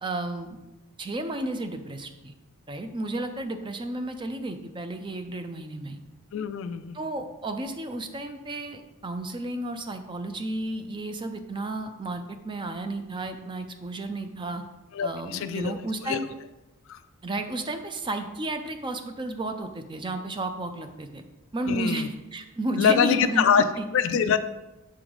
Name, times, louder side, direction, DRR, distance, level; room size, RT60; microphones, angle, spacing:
voice 1, 0.0-0.6 1.0-2.3 2.7-6.0 6.9-14.6 15.0-16.2 17.2-21.2 21.5-23.9, right 1 dB, 20° right, 7 dB, 0.4 m, -32 dB
voice 2, 6.3-7.1 14.9-15.7 16.0-16.2 16.9-17.0 21.7-22.1 22.8-23.6 23.9-24.4, left 7 dB, 60° left, 11 dB, 0.3 m, -24 dB
7.0 x 3.8 x 4.9 m, 1.0 s
head